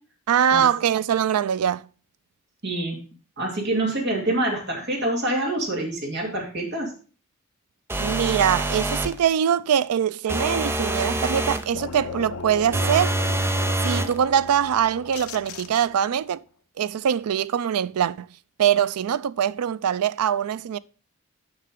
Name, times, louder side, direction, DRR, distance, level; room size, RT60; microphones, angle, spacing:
voice 1, 0.3-1.9 8.0-13.1 13.8-16.4 16.8-18.3 18.6-20.8, right 8 dB, 90° right, 0.4 m, -23 dB
voice 2, 2.6-3.0 3.4-6.9, right 1 dB, 50° right, 2.3 m, -26 dB
sound 1, 7.9-9.2 10.3-11.7 12.7-14.2, right 1 dB, 10° right, 0.4 m, -25 dB
sound 2, 11.7-16.2, left 5 dB, 75° left, 0.7 m, -37 dB
6.6 x 5.8 x 5.1 m
head